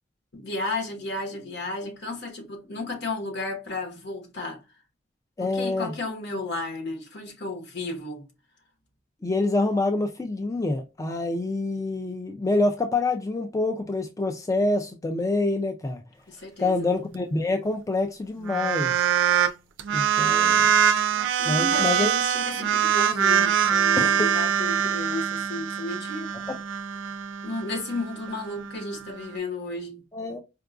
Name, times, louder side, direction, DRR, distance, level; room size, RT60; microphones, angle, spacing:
voice 1, 0.3-4.6 5.4-8.2 16.3-16.9 21.4-26.3 27.4-30.0, left 2 dB, 65° left, 1.2 m, -33 dB
voice 2, 5.4-5.9 9.2-16.0 16.6-19.1 19.9-20.7 21.5-22.1 24.0-24.3 26.5-26.6 30.1-30.4, left 2 dB, 15° left, 0.3 m, -26 dB
sound 1, 18.4-19.5 19.8-29.4, right 8 dB, 75° right, 0.4 m, -24 dB
4.5 x 2.4 x 2.4 m
head